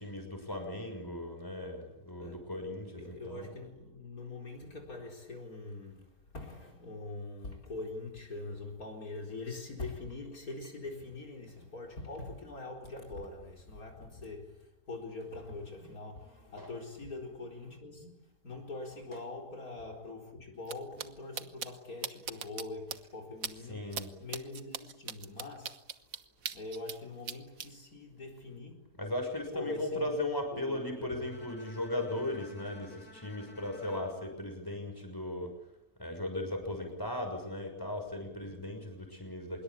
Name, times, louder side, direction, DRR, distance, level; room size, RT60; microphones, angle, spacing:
voice 1, 0.0-3.5 16.6-16.7 23.7-24.2 29.0-35.6 36.0-39.6, left 1 dB, 15° left, 6.3 m, -37 dB
voice 2, 2.9-23.9 24.2-25.9 26.5-28.9 29.5-30.1 30.5-31.3, left 3 dB, 60° left, 4.8 m, -43 dB
sound 1, 20.6-20.7 21.0-21.1 21.4-21.7 22.0-22.6 22.9-23.0 23.4-23.5 23.9-24.0 24.3-27.0 27.3-27.7, right 7 dB, 60° right, 1.6 m, -38 dB
Bowed string instrument, 31.2-35.4, left 2 dB, 85° left, 5.7 m, -54 dB
25.5 x 22.5 x 8.6 m
omnidirectional pair, 1.7 m